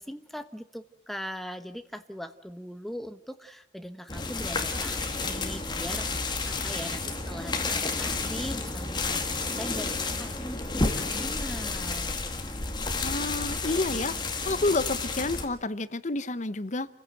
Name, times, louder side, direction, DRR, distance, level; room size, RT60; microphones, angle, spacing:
voice 1, 0.0-12.2, equal, ahead, 9 dB, 1.0 m, -40 dB
sound 1, 4.1-15.5, left 3 dB, 25° left, 2.2 m, -31 dB
voice 2, 13.0-14.1 14.5-16.9, left 2 dB, 40° left, 15 dB, 0.8 m, -29 dB
29.0 x 16.0 x 7.8 m, 0.77 s
head